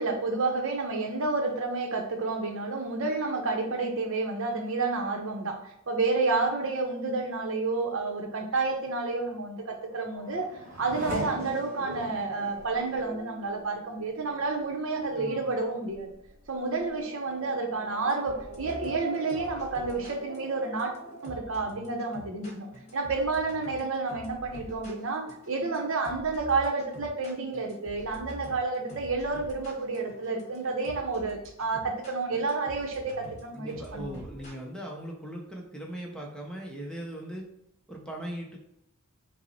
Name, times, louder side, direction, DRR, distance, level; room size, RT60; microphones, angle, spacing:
voice 1, 0.0-16.1 16.5-20.9 21.2-34.2, right 3 dB, 65° right, 3 dB, 0.7 m, -30 dB
Race car auto racing / Accelerating revving vroom, 9.6-22.8 23.2-23.9, equal, 35° right, 1.6 m, -42 dB
voice 2, 15.1-15.5 33.5-37.5 37.9-38.6, right 1 dB, 5° left, -1 dB, 0.5 m, -39 dB
sound 1, 18.1-34.7, equal, 30° left, 0.9 m, -47 dB
5.4 x 2.0 x 4.1 m, 0.78 s
head